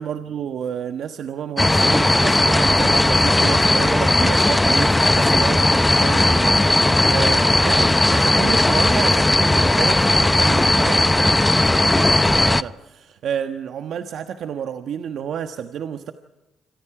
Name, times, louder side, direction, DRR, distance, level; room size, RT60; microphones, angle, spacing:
voice 1, 0.0-16.1, right 8 dB, 70° right, 7 dB, 1.3 m, -30 dB
sound 1, 1.6-12.6, left 1 dB, 10° left, 0.7 m, -17 dB
27.5 x 25.5 x 4.9 m, 1.0 s
cardioid pair, 90°, 0 cm